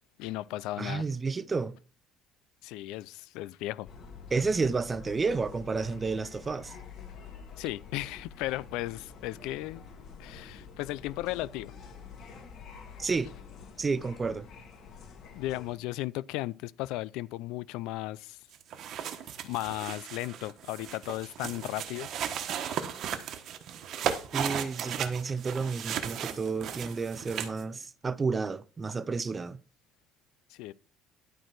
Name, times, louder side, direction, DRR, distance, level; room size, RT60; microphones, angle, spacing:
voice 1, 0.2-1.1 2.6-3.9 7.6-9.8 10.2-11.7 15.3-18.4 19.4-22.1 30.5-30.7, left 17 dB, 90° left, 0.4 m, -35 dB
voice 2, 0.8-1.8 4.3-6.8 13.0-13.3 13.8-14.5 24.3-29.6, right 4 dB, 20° right, 0.5 m, -31 dB
sound 1, 3.8-15.8, left 5 dB, 55° left, 2.6 m, -48 dB
sound 2, 18.5-27.6, right 9 dB, 55° right, 1.3 m, -36 dB
11.5 x 4.6 x 6.0 m
cardioid pair, 140°, 0 cm